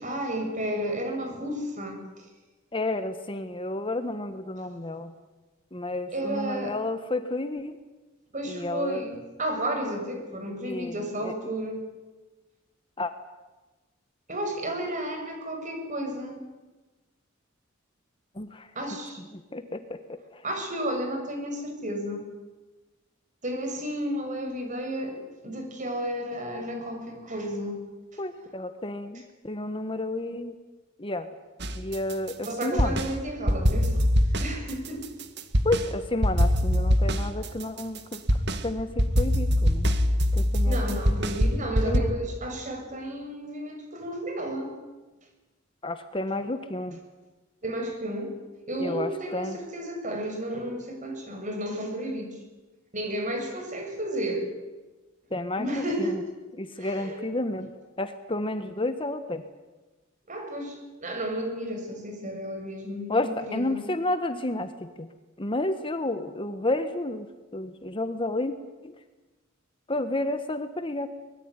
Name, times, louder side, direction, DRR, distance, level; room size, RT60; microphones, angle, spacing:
voice 1, 0.0-2.3 6.1-6.8 8.3-11.8 14.3-16.4 18.8-19.2 20.4-22.2 23.4-27.8 32.4-34.0 34.4-35.1 40.6-44.8 47.6-48.4 48.7-52.4 52.9-54.5 55.6-56.2 56.8-57.2 60.3-63.9, right 1 dB, 40° right, 4 dB, 6.7 m, -32 dB
voice 2, 2.7-5.1 5.7-7.8 8.5-9.1 10.6-11.5 13.0-13.1 18.3-18.7 19.3-20.0 20.3-20.4 28.2-30.5 31.0-31.3 31.7-33.0 35.6-38.2 38.6-39.9 40.3-41.1 41.8-42.1 45.8-47.0 48.8-49.6 55.3-56.2 56.5-57.7 58.0-59.4 63.1-65.1 65.4-67.3 67.5-68.5 68.8-68.9 69.9-71.1, left 2 dB, 25° left, 9 dB, 1.3 m, -31 dB
sound 1, 31.6-33.1 33.5-35.9 36.2-42.0, equal, 55° right, 2.0 m, -23 dB
24.0 x 21.5 x 9.8 m, 1.2 s
head